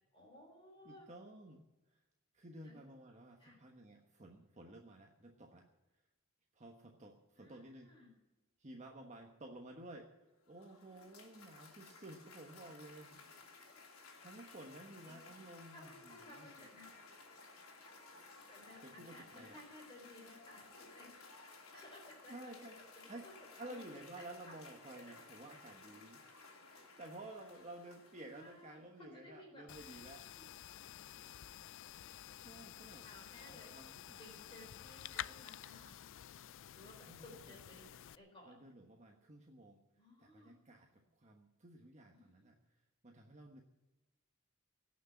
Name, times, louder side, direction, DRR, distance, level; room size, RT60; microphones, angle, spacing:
voice 1, 0.1-1.1 2.6-2.8 3.4-3.6 7.4-8.1 13.7-13.8 15.1-15.3 15.7-16.9 18.5-21.1 21.7-23.3 23.6-25.2 28.2-29.7 30.3-30.5 33.0-33.7 34.2-36.0 36.8-37.9 38.1-38.5 40.0-40.6 42.1-42.5, left 1 dB, 25° left, -1 dB, 3.9 m, -58 dB
voice 2, 0.8-1.6 2.3-5.7 6.5-7.9 8.6-10.1 10.5-13.2 13.8-16.5 18.8-19.6 22.3-22.8 23.1-23.3 23.5-30.2 31.2-31.3 32.0-33.0 33.4-34.2 37.1-37.6 38.4-39.8 40.2-42.6 43.0-43.6, right 1 dB, 35° right, 1 dB, 1.3 m, -53 dB
Cheering / Applause, 10.3-28.9, left 4 dB, 85° left, 3.0 m, -58 dB
sound 1, 29.7-38.2, left 11 dB, 65° left, 0.4 m, -50 dB
17.5 x 6.5 x 9.5 m, 1.0 s
head